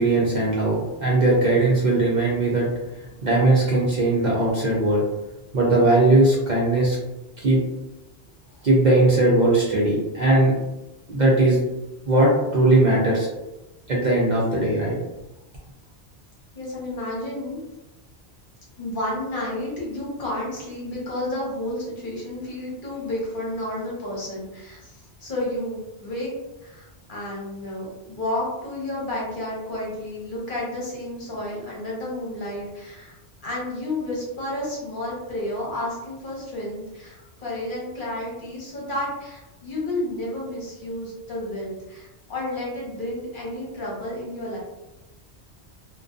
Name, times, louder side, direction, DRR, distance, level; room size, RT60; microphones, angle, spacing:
voice 1, 0.0-2.7 3.2-5.0 5.5-7.0 7.4-7.6 8.6-10.5 11.1-11.6 12.1-13.3 13.9-15.0, right 2 dB, 55° right, -4 dB, 0.5 m, -19 dB
voice 2, 16.5-17.6 18.8-26.3 26.6-44.6, left 1 dB, 55° left, -4 dB, 0.9 m, -31 dB
2.4 x 2.2 x 2.3 m, 1.0 s
omnidirectional pair, 1.1 m